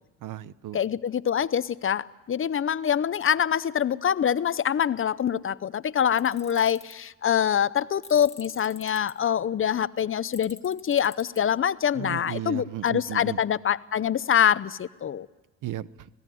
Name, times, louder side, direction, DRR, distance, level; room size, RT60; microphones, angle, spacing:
voice 1, 0.2-0.8 11.9-13.4 15.6-16.1, right 13 dB, 70° right, 17 dB, 0.9 m, -35 dB
voice 2, 0.7-15.3, left 8 dB, 40° left, 16 dB, 0.7 m, -25 dB
Tools, 6.2-6.9 8.0-9.1 10.3-11.4, left 4 dB, 20° left, 2.1 m, -45 dB
26.5 x 18.0 x 9.3 m, 1.2 s
cardioid pair, 85°, 32 cm